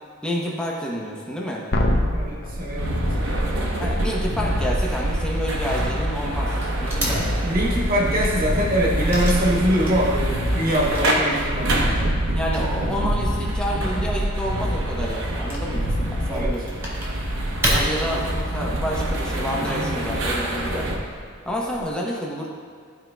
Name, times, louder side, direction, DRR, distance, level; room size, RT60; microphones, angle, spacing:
voice 1, 0.2-1.6 3.8-7.3 12.3-16.7 17.7-21.0 21.4-22.5, equal, 5° left, -3 dB, 0.8 m, -29 dB
sound 1, 1.7-17.0 20.2-20.3, left 1 dB, 50° left, 0.7 m, -29 dB
voice 2, 2.1-3.4 7.4-12.0 16.3-16.5 17.6-18.0, equal, 40° right, -4 dB, 1.3 m, -24 dB
Wood / Tearing, 2.3-21.9, equal, 10° right, 1.5 m, -34 dB
sound 2, 2.8-21.0, right 1 dB, 65° right, 0.9 m, -26 dB
12.5 x 4.6 x 2.3 m, 2.2 s
head